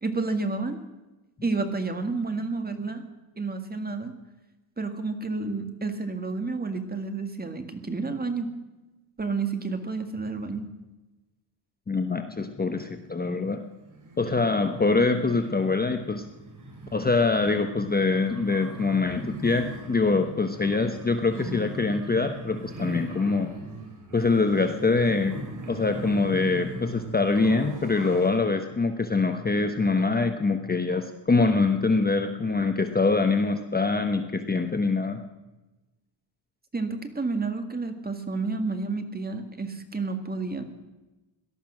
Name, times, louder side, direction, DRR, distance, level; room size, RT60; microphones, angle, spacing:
voice 1, 0.0-0.8 1.4-3.0 3.4-4.1 4.8-8.5 9.2-10.7 36.7-40.6, right 3 dB, 20° right, 7 dB, 1.9 m, -30 dB
voice 2, 11.9-13.6 14.2-16.2 16.9-23.5 24.1-25.3 25.7-35.2, left 3 dB, 20° left, 7 dB, 1.0 m, -24 dB
sound 1, 13.7-28.3, right 1 dB, 35° right, 3.9 m, -40 dB
18.0 x 12.5 x 6.2 m, 1.1 s
cardioid pair, 125°, 50 cm